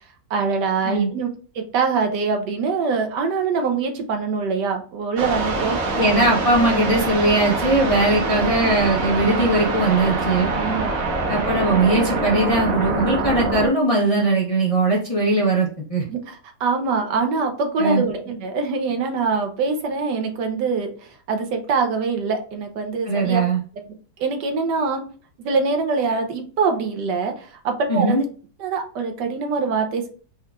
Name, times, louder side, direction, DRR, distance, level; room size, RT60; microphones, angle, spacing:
voice 1, 0.3-1.3 1.5-5.8 10.5-11.3 16.1-23.4 24.2-25.0 25.4-28.3 28.6-30.1, right 4 dB, 80° right, 4 dB, 1.4 m, -24 dB
sound 1, 5.2-13.7, right 2 dB, 60° right, 1.1 m, -24 dB
voice 2, 6.0-10.5 11.3-16.0 17.8-18.0 23.1-23.6 27.9-28.2, right 2 dB, 30° left, -4 dB, 0.7 m, -20 dB
4.3 x 2.4 x 3.5 m, 0.40 s
omnidirectional pair, 1.8 m